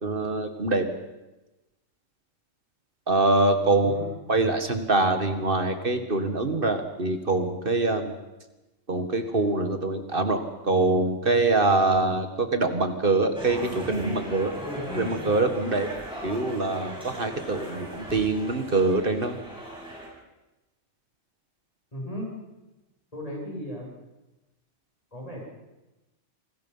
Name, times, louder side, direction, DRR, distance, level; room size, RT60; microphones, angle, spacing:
voice 1, 0.0-0.9 3.1-4.0 4.3-8.1 8.9-14.5 14.9-15.9 16.2-19.4, right 2 dB, 45° right, 7 dB, 2.1 m, -24 dB
voice 2, 3.7-4.1 21.9-22.3 23.1-23.9 25.1-25.5, equal, 30° left, -3 dB, 7.8 m, -36 dB
sound 1, 13.3-20.1, equal, 5° right, 8.0 m, -37 dB
28.0 x 20.0 x 5.7 m, 1.0 s
omnidirectional pair, 1.3 m